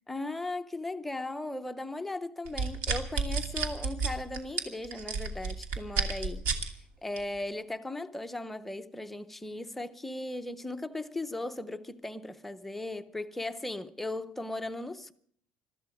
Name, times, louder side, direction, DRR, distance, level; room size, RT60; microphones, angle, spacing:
voice 1, 0.1-6.5 7.0-15.1, left 2 dB, 5° left, 0.7 m, -37 dB
sound 1, 2.5-6.7 7.2-7.4, right 5 dB, 60° right, 2.6 m, -30 dB
22.0 x 13.5 x 4.8 m
cardioid pair, 170°, 4 cm